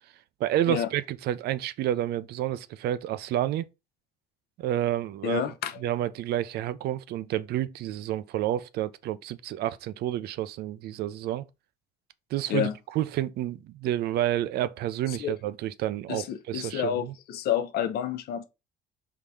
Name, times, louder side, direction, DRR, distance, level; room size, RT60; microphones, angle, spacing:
voice 1, 0.4-3.6 4.6-5.4 5.8-11.4 12.3-17.1, right 12 dB, 70° right, 0.4 m, -29 dB
voice 2, 5.2-5.7 12.5-12.7 15.1-15.3 16.1-18.4, left 9 dB, 70° left, 0.6 m, -29 dB
3.6 x 2.8 x 4.7 m
cardioid pair, 110°, 17 cm